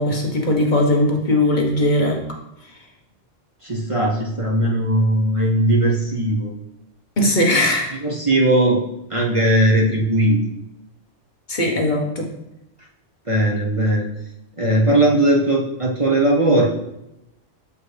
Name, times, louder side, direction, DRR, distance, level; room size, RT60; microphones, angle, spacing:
voice 1, 0.0-2.2 7.2-7.9 11.5-12.3, left 1 dB, 40° left, 0 dB, 1.1 m, -19 dB
voice 2, 3.6-6.5 8.0-8.8 9.1-10.4 13.3-14.1 14.6-16.7, right 1 dB, 30° right, -2 dB, 0.7 m, -18 dB
6.6 x 4.7 x 3.3 m, 0.88 s
omnidirectional pair, 1.2 m